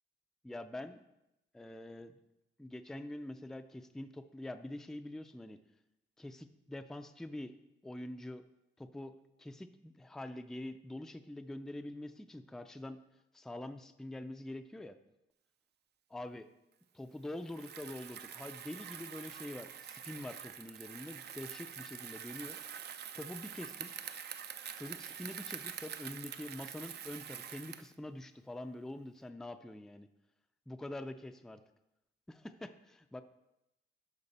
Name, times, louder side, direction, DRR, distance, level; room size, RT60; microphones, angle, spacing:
voice 1, 0.4-1.0 1.5-2.2 2.6-5.6 6.2-7.5 7.8-8.4 8.8-13.0 13.3-15.0 16.1-16.5 16.9-22.6 23.1-23.9 24.8-30.1 30.7-31.6 32.3-33.2, left 1 dB, ahead, 9 dB, 0.3 m, -45 dB
Bicycle, 17.4-28.0, right 8 dB, 55° right, 0.5 m, -46 dB
12.0 x 4.9 x 4.1 m, 0.90 s
wide cardioid pair, 140°, 20 cm